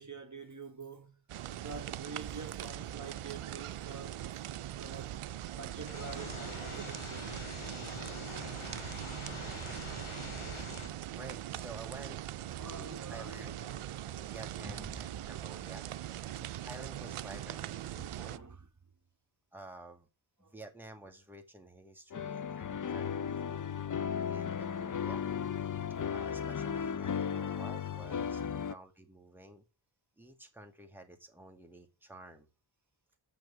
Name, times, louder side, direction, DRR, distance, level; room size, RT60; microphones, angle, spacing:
voice 1, 0.0-4.4 4.7-7.3 9.8-10.2 12.5-15.0 16.4-16.5 17.9-18.7 20.4-20.6 23.6-23.8 25.8-26.2, right 4 dB, 35° right, 1.4 m, -48 dB
sound 1, 1.3-18.4, right 12 dB, 85° right, 0.6 m, -41 dB
sound 2, 5.9-10.9, left 3 dB, 75° left, 3.0 m, -44 dB
voice 2, 11.1-12.2 12.7-13.6 14.3-15.9 16.6-18.4 19.5-20.1 20.4-23.7 24.3-25.2 26.1-29.6 30.2-32.5, right 2 dB, 5° right, 1.9 m, -51 dB
sound 3, 22.1-28.8, left 7 dB, 40° left, 0.6 m, -35 dB
6.8 x 6.1 x 7.1 m
cardioid pair, 50°, 49 cm